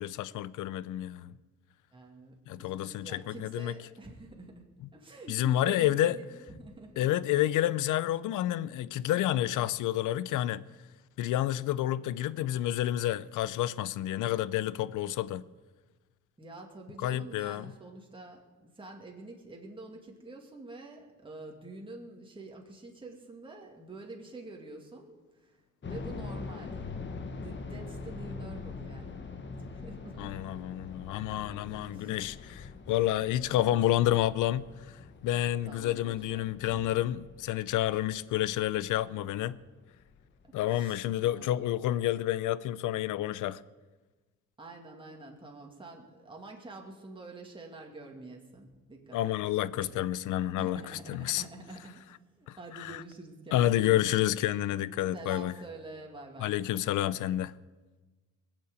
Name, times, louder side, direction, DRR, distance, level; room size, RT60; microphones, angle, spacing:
voice 1, 0.0-1.3 2.5-3.7 5.3-6.2 7.0-10.6 11.2-15.4 17.0-17.7 30.2-39.6 40.5-43.6 49.1-51.4 52.5-53.0 53.5-55.5 56.4-57.5, left 13 dB, 85° left, 0.6 m, -29 dB
voice 2, 1.9-7.2 16.4-25.6 25.8-26.8 27.3-29.3 29.6-30.3 31.3-31.4 31.9-32.2 33.5-33.8 35.6-36.8 40.5-41.7 44.6-49.3 49.8-49.9 50.6-54.2 55.1-56.6, right 2 dB, 15° right, 2.4 m, -47 dB
sound 1, 25.8-40.7 41.0-41.1 41.7-42.0, left 4 dB, 40° left, 1.5 m, -44 dB
20.5 x 7.6 x 8.2 m
cardioid pair, 90°, 30 cm